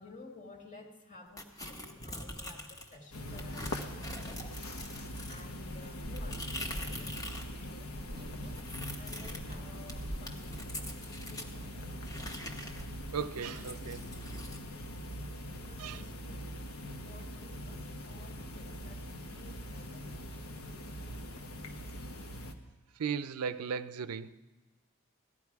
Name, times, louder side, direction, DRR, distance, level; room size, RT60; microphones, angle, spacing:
voice 1, 0.0-11.5 15.4-20.8, left 3 dB, 35° left, 3 dB, 1.9 m, -55 dB
sound 1, 1.4-3.0 3.4-7.5 7.8-11.5 12.0-14.6, equal, 15° left, 1.1 m, -43 dB
sound 2, 3.1-22.5, equal, 75° left, 1.1 m, -42 dB
sound 3, 8.0-14.2, right 1 dB, 20° right, 0.9 m, -55 dB
voice 2, 13.1-14.0 15.8-16.0 23.0-24.4, right 6 dB, 85° right, 14 dB, 0.5 m, -36 dB
16.5 x 13.5 x 4.7 m, 1.2 s
head